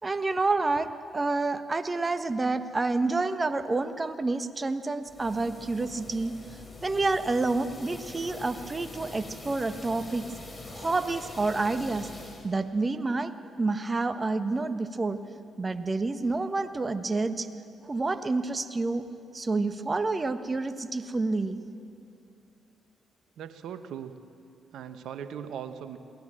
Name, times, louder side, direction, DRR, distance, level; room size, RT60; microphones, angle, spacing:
voice 1, 0.0-6.3 6.8-10.3 10.7-12.1 12.4-13.3 13.6-15.2 15.6-17.5 17.8-19.0 19.3-21.6, right 3 dB, 30° right, 11 dB, 1.3 m, -28 dB
sound 1, 5.0-12.5, left 2 dB, 25° left, 4.5 m, -44 dB
voice 2, 23.4-24.1 24.7-26.0, right 8 dB, 70° right, 10 dB, 1.1 m, -39 dB
22.5 x 18.0 x 7.7 m, 2.6 s
hypercardioid pair, 45°, 0 cm